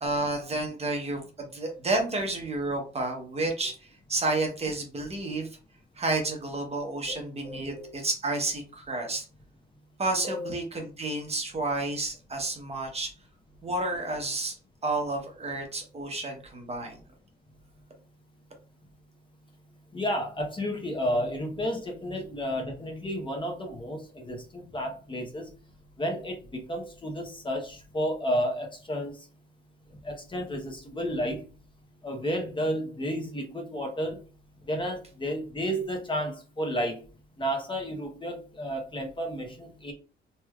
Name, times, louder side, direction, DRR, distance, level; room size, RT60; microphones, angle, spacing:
voice 1, 0.0-5.6 6.0-9.2 10.0-13.1 13.6-14.6 14.8-17.0, right 2 dB, 30° right, 2 dB, 1.0 m, -31 dB
voice 2, 7.4-7.9 10.2-10.6 19.9-25.5 26.0-29.3 30.0-31.4 32.0-34.2 34.7-37.0 37.4-39.9, equal, 25° left, 2 dB, 0.9 m, -32 dB
3.3 x 2.8 x 2.3 m, 0.36 s
cardioid pair, 90°, 20 cm